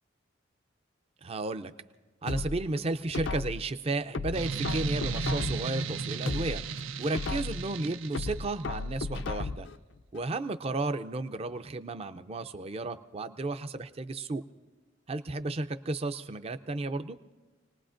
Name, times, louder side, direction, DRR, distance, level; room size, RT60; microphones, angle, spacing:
voice 1, 1.2-1.7 2.2-6.6 7.0-9.7 10.1-14.4 15.1-17.2, right 2 dB, 30° right, 10 dB, 0.5 m, -33 dB
sound 1, 2.3-3.7 4.1-5.8 6.1-7.7 8.1-9.8 10.1-10.2, left 3 dB, 65° left, 0.5 m, -35 dB
sound 2, 4.3-8.8, right 5 dB, 90° right, 0.5 m, -35 dB
27.5 x 19.5 x 2.5 m, 1.3 s
head